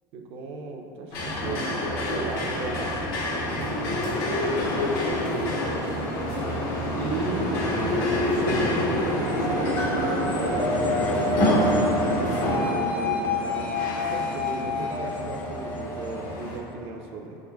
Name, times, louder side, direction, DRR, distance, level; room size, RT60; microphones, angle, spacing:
voice 1, 0.1-3.5 4.7-6.0 6.9-7.7 8.2-13.7 14.1-17.4, right 4 dB, 60° right, 2 dB, 0.5 m, -36 dB
sound 1, 1.1-16.6, left 1 dB, 75° left, 0.9 m, -27 dB
sound 2, 9.2-16.7, left 3 dB, 15° left, 0.5 m, -29 dB
4.7 x 3.6 x 2.2 m, 2.9 s
supercardioid pair, 95°, 11 cm